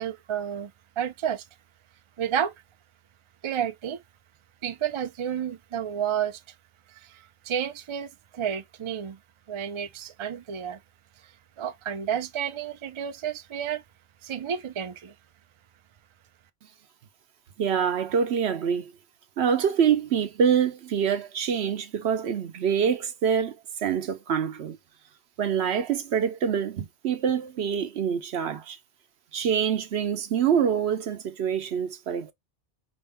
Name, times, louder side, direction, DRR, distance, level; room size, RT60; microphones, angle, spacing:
voice 1, 0.0-1.4 2.2-2.5 3.4-4.0 4.6-6.4 6.9-9.2 9.5-10.8 11.2-11.3 11.6-13.8 14.2-15.1, right 9 dB, 55° right, 0.3 m, -31 dB
voice 2, 17.6-18.9 19.4-23.6 23.8-24.8 25.4-28.8 29.3-32.3, right 7 dB, 70° right, 1.0 m, -25 dB
5.0 x 2.6 x 3.5 m
omnidirectional pair, 1.2 m